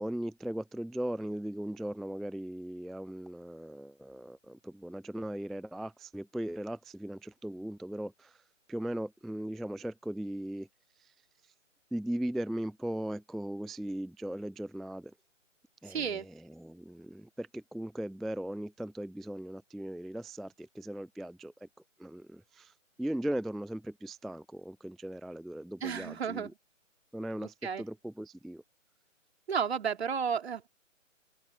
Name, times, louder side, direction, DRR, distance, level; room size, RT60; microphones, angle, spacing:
voice 1, 0.0-8.4 8.7-10.7 11.0-11.1 11.9-15.1 15.8-21.7 22.0-22.7 23.0-26.5 27.1-28.6, right 1 dB, ahead, 0.3 m, -38 dB
voice 2, 15.8-16.3 25.8-26.5 27.4-27.8 29.5-30.7, right 7 dB, 50° right, 2.9 m, -33 dB
open air
figure-of-eight pair, 155°, 39 cm